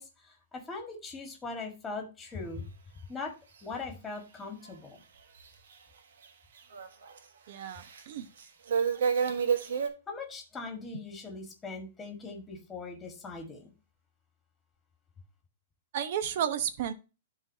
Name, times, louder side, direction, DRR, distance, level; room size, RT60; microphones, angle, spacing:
voice 1, 0.0-2.6 3.1-3.3 3.6-5.0 10.1-13.7, left 3 dB, 10° left, 2 dB, 1.6 m, -40 dB
sound 1, 5.4-5.5 6.2-6.3 6.6-7.2 7.7-8.0 8.4-9.9, right 6 dB, 70° right, 1.3 m, -29 dB
voice 2, 7.5-8.3 15.9-16.9, right 9 dB, 50° right, 12 dB, 0.9 m, -32 dB
11.0 x 3.9 x 2.7 m, 0.30 s
hypercardioid pair, 165°, 0 cm